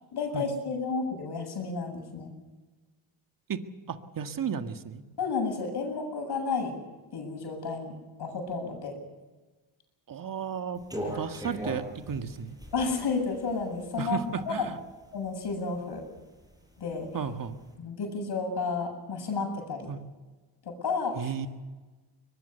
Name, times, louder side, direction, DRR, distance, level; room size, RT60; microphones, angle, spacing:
voice 1, 0.1-2.3 5.2-6.8 7.1-8.9 12.7-14.2 14.5-14.7 15.1-16.0 16.8-17.1 17.8-19.9 20.6-21.3, left 4 dB, 55° left, 3 dB, 7.6 m, -31 dB
voice 2, 3.9-5.0 10.1-12.6 14.0-14.8 17.1-17.6 19.9-20.0 21.1-21.5, right 7 dB, 45° right, 7 dB, 1.8 m, -34 dB
sound 1, 10.8-14.7 15.2-16.2 16.5-17.5, equal, 10° right, 7.0 m, -39 dB
23.0 x 20.0 x 6.8 m, 1.2 s
cardioid pair, 85°, 47 cm